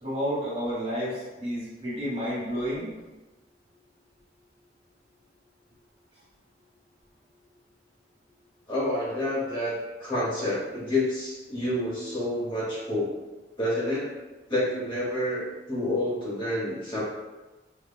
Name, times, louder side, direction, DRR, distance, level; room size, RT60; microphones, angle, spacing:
voice 1, 0.0-2.9, equal, 35° right, -8 dB, 1.3 m, -30 dB
voice 2, 8.7-13.1 13.6-14.1 14.5-17.0, left 1 dB, 30° left, -6 dB, 0.8 m, -28 dB
4.9 x 2.1 x 2.2 m, 1.1 s
head